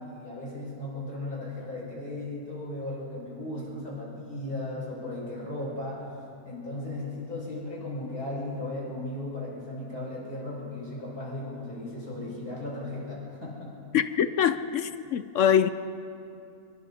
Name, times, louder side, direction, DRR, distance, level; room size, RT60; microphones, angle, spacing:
voice 1, 0.0-6.1 6.4-13.8, left 1 dB, 85° left, 7.2 m, -36 dB
voice 2, 13.9-15.7, left 9 dB, 65° left, 0.9 m, -24 dB
26.0 x 24.5 x 4.2 m
omnidirectional pair, 1.6 m